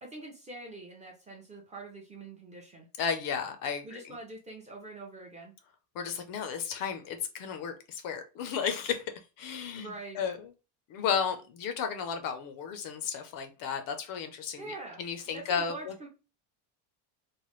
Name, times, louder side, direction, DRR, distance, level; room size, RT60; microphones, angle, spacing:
voice 1, 0.0-2.9 3.8-5.5 9.8-10.2 14.6-16.1, right 2 dB, 15° right, -1 dB, 0.4 m, -44 dB
voice 2, 3.0-4.1 6.0-9.1 9.4-10.5 10.9-14.6 15.0-15.9, left 7 dB, 45° left, 7 dB, 0.5 m, -33 dB
3.1 x 2.1 x 3.0 m, 0.31 s
cardioid pair, 155°, 47 cm